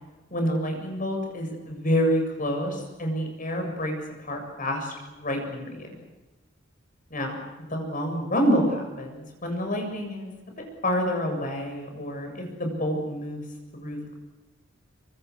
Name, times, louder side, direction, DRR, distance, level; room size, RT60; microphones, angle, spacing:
voice 1, 0.3-4.0 4.2-5.9 7.1-10.3 10.6-13.4 13.7-14.1, equal, 45° left, 3 dB, 7.5 m, -28 dB
26.5 x 25.0 x 6.5 m, 1.1 s
head